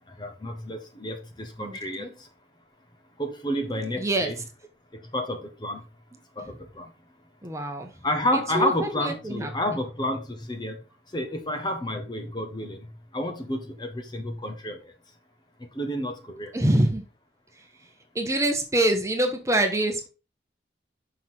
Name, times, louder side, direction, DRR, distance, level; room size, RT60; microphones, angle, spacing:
voice 1, 0.2-2.3 3.2-4.3 5.1-5.8 6.4-6.9 8.0-10.8 11.1-14.9 15.7-16.5, left 1 dB, 25° left, 1.1 m, -30 dB
voice 2, 1.6-2.1 4.0-4.3 7.4-8.0 8.3-9.8 16.5-17.0 17.6-17.7 18.1-20.1, right 1 dB, 15° right, 1.1 m, -25 dB
5.9 x 5.8 x 4.4 m
head